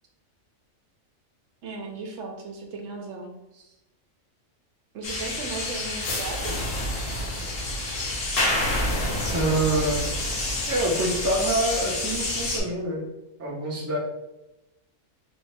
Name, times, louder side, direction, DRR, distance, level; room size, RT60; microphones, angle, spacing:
voice 1, 1.6-3.3 4.9-6.6, right 3 dB, 70° right, 2 dB, 0.9 m, -36 dB
sound 1, 5.0-12.6, left 1 dB, 70° left, 1.3 m, -28 dB
voice 2, 9.3-10.1 10.7-13.0 13.4-14.0, right 1 dB, 20° right, -3 dB, 0.4 m, -26 dB
3.5 x 2.7 x 3.2 m, 0.94 s
omnidirectional pair, 1.4 m